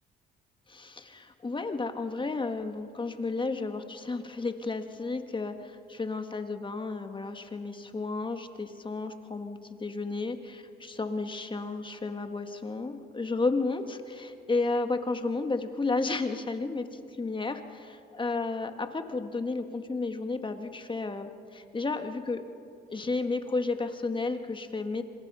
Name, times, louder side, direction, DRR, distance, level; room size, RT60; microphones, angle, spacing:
voice 1, 0.7-17.9 18.2-22.4 22.9-25.0, left 3 dB, 25° left, 7 dB, 1.7 m, -32 dB
26.0 x 26.0 x 5.6 m, 2.6 s
cardioid pair, 90°, 20 cm